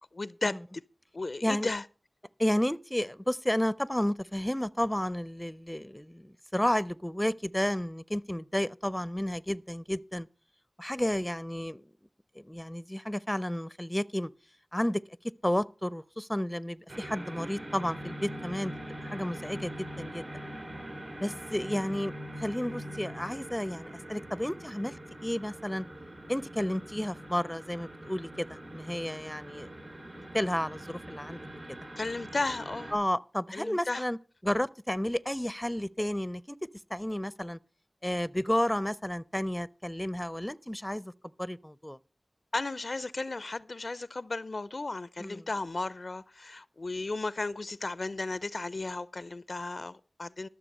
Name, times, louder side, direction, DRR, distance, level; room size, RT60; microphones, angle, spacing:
voice 1, 0.1-0.6 1.1-1.8 32.0-32.9 33.5-34.0 42.5-50.5, left 3 dB, 70° left, 0.4 m, -34 dB
voice 2, 2.4-10.3 10.8-11.8 12.4-14.3 14.7-15.0 15.4-18.7 19.0-20.3 21.2-22.1 22.4-25.0 25.2-25.9 26.3-29.7 30.3-31.4 31.7-31.8 32.9-34.2 34.4-36.6 36.9-37.6 38.0-41.1 41.4-42.0 45.2-45.4, equal, 15° left, 0.5 m, -32 dB
sound 1, 16.9-32.9, right 1 dB, 75° right, 3.6 m, -43 dB
13.0 x 6.7 x 6.5 m
wide cardioid pair, 40°, 0 cm